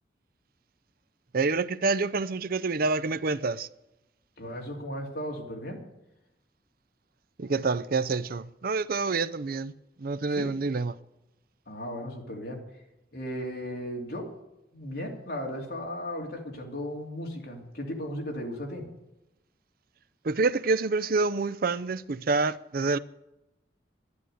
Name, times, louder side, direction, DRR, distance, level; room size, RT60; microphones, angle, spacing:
voice 1, 1.3-3.7 7.4-9.7 10.0-11.0 20.2-23.0, right 3 dB, 55° right, 0.5 m, -27 dB
voice 2, 4.4-5.8 10.3-10.7 11.7-12.6 13.1-14.3 14.7-18.9, equal, 60° left, 3.1 m, -36 dB
11.5 x 11.5 x 7.8 m
head